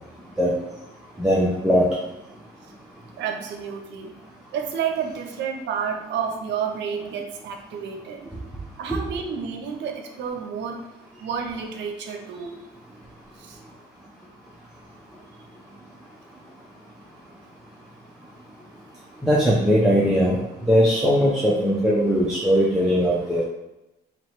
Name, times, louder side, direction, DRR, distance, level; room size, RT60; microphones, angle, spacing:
voice 1, 1.2-1.8 19.2-20.4 20.7-23.4, equal, 5° right, -5 dB, 0.6 m, -19 dB
voice 2, 3.2-4.1 4.5-8.2 8.8-10.8 11.2-12.5 13.4-13.6, right 7 dB, 80° right, 4 dB, 0.6 m, -30 dB
3.1 x 3.0 x 4.4 m, 0.93 s
cardioid pair, 140°, 18 cm